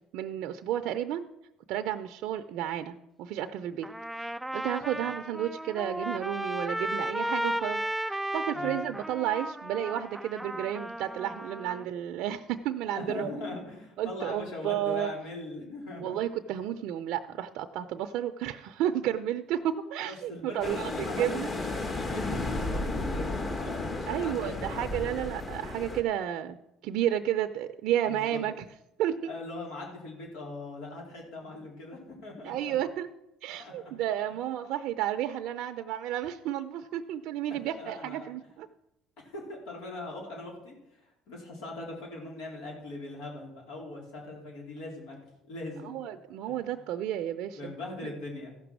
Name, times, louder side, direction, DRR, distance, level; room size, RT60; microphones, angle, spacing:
voice 1, 0.1-1.3 1.7-3.9 4.2-7.8 8.1-13.3 14.0-15.1 16.0-21.5 24.1-26.6 26.8-28.6 29.0-29.3 32.4-33.1 33.4-38.7 45.8-47.8, right 11 dB, 70° right, 7 dB, 0.5 m, -32 dB
Trumpet, 3.8-11.9, right 1 dB, 5° right, 0.3 m, -34 dB
voice 2, 13.0-16.2 20.1-24.8 28.1-28.4 29.3-32.7 33.6-33.9 34.3-34.4 37.7-38.3 39.2-45.2 45.5-46.0 46.5-46.6 47.6-48.5, left 2 dB, 80° left, -1 dB, 4.3 m, -41 dB
sound 1, 20.6-26.0, left 2 dB, 30° left, 1.6 m, -33 dB
14.5 x 6.0 x 6.2 m, 0.87 s
supercardioid pair, 95°, 0 cm